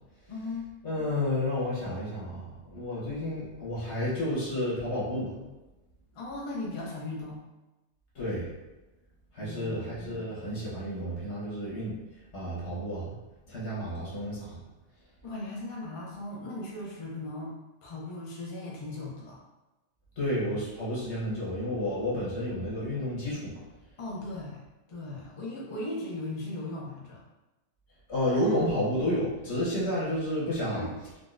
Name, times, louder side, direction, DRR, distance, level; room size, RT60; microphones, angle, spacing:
voice 1, 0.3-0.6 6.1-7.4 9.4-10.3 15.2-17.5 17.8-19.4 24.0-24.6 24.9-27.2 30.7-31.0, left 2 dB, 40° left, -3 dB, 0.6 m, -38 dB
voice 2, 0.8-2.4 2.7-5.3 8.1-8.5 9.3-11.9 12.3-13.1 13.5-14.6 20.2-23.5 28.1-30.9, left 1 dB, 80° left, -8 dB, 1.5 m, -31 dB
3.8 x 2.3 x 2.5 m, 1.1 s
omnidirectional pair, 1.1 m